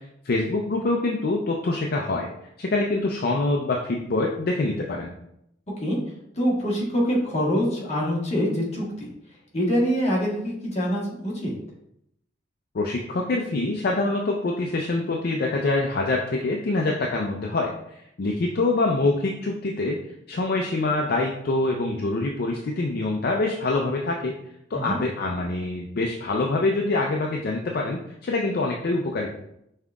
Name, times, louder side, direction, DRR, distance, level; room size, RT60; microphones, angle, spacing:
voice 1, 0.2-2.3 2.6-5.1 12.7-20.0 20.3-24.3 24.7-29.3, left 2 dB, 55° left, 0 dB, 0.4 m, -25 dB
voice 2, 6.4-9.1 9.5-11.5 24.7-25.0, equal, 35° left, -4 dB, 1.3 m, -25 dB
5.5 x 3.6 x 2.3 m, 0.77 s
head